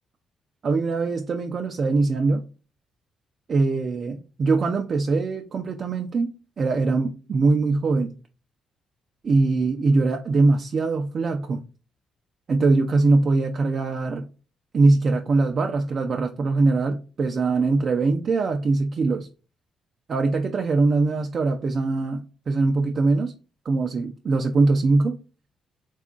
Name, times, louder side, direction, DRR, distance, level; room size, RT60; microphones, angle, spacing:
voice 1, 0.6-2.4 3.5-8.1 9.2-11.6 12.5-14.3 14.7-19.3 20.1-23.3 23.7-25.2, right 3 dB, 50° right, 0.4 m, -22 dB
3.4 x 2.4 x 3.6 m
cardioid pair, 90°, 0 cm